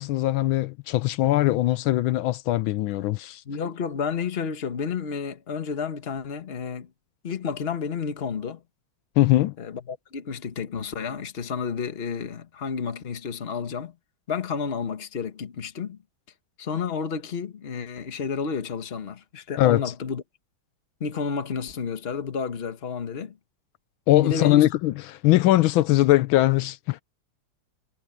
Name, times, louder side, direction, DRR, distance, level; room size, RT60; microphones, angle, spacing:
voice 1, 0.0-3.4 9.2-9.5 19.6-19.8 24.1-27.0, left 16 dB, 80° left, 1.4 m, -21 dB
voice 2, 3.4-6.9 7.2-8.6 9.6-13.9 14.3-16.0 16.6-20.2 21.0-23.4 24.2-24.7, left 6 dB, 35° left, 1.3 m, -31 dB
omnidirectional pair, 2.2 m